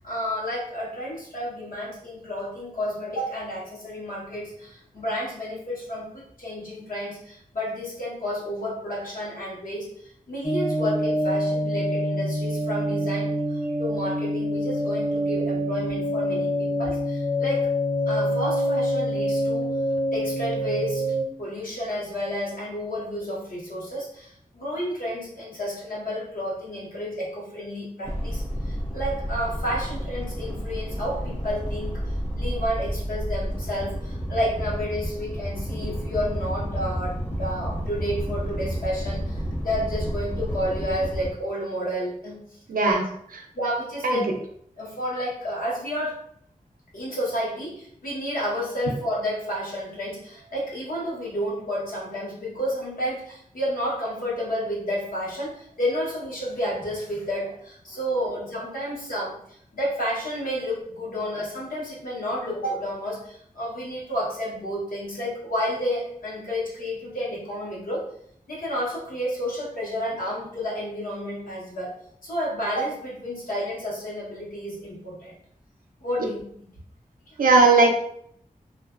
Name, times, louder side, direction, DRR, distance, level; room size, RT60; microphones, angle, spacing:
voice 1, 0.0-17.7 18.1-19.7 20.1-31.9 32.4-42.4 42.8-43.0 43.5-44.2 44.8-46.2 46.9-68.0 68.5-71.9 72.2-75.3 76.0-76.4, equal, 75° left, -6 dB, 1.0 m, -31 dB
sound 1, 10.4-21.2, equal, 10° left, 0.6 m, -26 dB
sound 2, 28.0-41.3, equal, 40° left, 0.9 m, -30 dB
voice 2, 42.7-43.0 44.0-44.2 77.4-77.9, right 3 dB, 75° right, 3 dB, 0.4 m, -17 dB
2.4 x 2.2 x 2.3 m, 0.67 s
wide cardioid pair, 65°, 15 cm